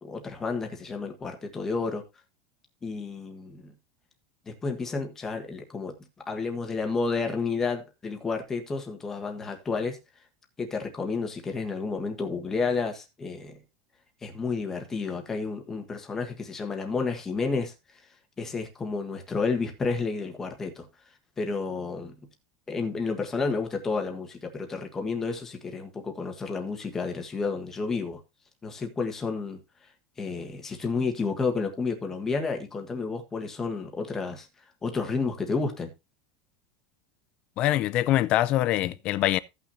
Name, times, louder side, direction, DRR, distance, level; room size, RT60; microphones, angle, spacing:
voice 1, 0.0-2.0 2.8-3.7 4.5-5.9 6.3-10.0 10.6-13.6 14.2-17.7 18.4-20.9 21.4-22.1 22.7-28.2 28.6-29.6 30.2-34.5 34.8-35.9, left 4 dB, 15° left, 1.5 m, -31 dB
voice 2, 37.6-39.4, left 14 dB, 35° left, 0.5 m, -24 dB
16.0 x 6.0 x 2.7 m
supercardioid pair, 165°, 3 cm